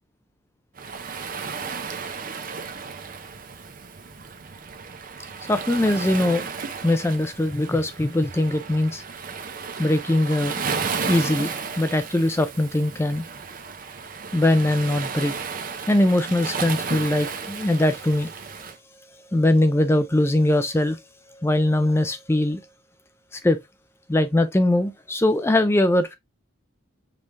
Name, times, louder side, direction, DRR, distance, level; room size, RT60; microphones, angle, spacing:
Waves surf, 0.8-18.8, right 5 dB, 45° right, 0.6 m, -33 dB
voice 1, 5.5-6.5 6.8-9.0 9.8-10.6 11.1-13.2 14.3-15.3 15.9-18.3 19.3-21.0 21.3-22.6 23.3-23.6 24.1-26.2, left 1 dB, 10° left, 0.4 m, -21 dB
5.4 x 3.2 x 2.5 m
head